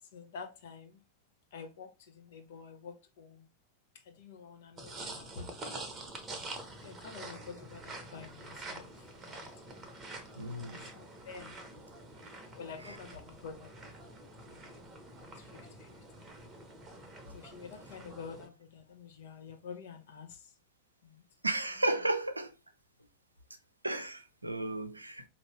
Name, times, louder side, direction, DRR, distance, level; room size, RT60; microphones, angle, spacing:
voice 1, 0.0-1.0 1.5-3.5 3.9-5.9 6.8-9.5 10.8-11.6 12.3-13.9 14.5-14.8 15.2-16.3 17.3-20.5 21.0-21.2, left 5 dB, 55° left, 1.0 m, -49 dB
sound 1, 4.8-18.5, right 2 dB, 20° right, 0.9 m, -47 dB
voice 2, 10.4-10.9 12.9-13.0 21.4-22.5 23.8-25.3, right 1 dB, 85° right, 0.6 m, -33 dB
4.5 x 2.8 x 3.1 m
figure-of-eight pair, 90°, 0 cm